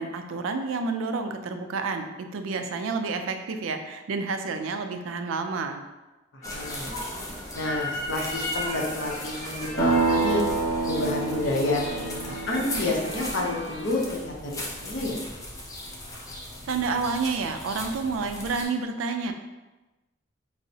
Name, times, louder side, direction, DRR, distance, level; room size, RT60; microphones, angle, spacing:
voice 1, 0.0-5.8 16.7-19.3, right 4 dB, 85° right, 6 dB, 0.3 m, -29 dB
voice 2, 6.3-6.9 7.5-10.4 10.8-15.2, left 2 dB, 70° left, -1 dB, 0.6 m, -29 dB
sound 1, 6.4-14.0, left 1 dB, 40° left, 0.9 m, -37 dB
sound 2, 6.4-18.6, left 1 dB, 15° left, 0.3 m, -39 dB
sound 3, 9.8-13.6, right 3 dB, 85° left, 1.0 m, -27 dB
4.5 x 2.0 x 2.7 m, 1.1 s
head